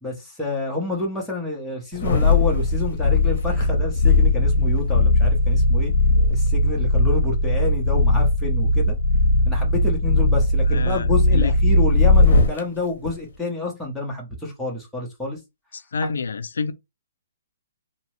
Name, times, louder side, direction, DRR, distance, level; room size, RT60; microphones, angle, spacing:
voice 1, 0.0-5.9 6.3-8.9 9.4-15.4 16.0-16.1, left 2 dB, ahead, 0.6 m, -28 dB
sound 1, 1.9-12.6 13.0-13.1, left 2 dB, 55° left, 0.7 m, -18 dB
voice 2, 10.7-11.5 15.7-16.7, left 5 dB, 90° left, 0.3 m, -28 dB
2.7 x 2.0 x 3.0 m
hypercardioid pair, 175°, 0 cm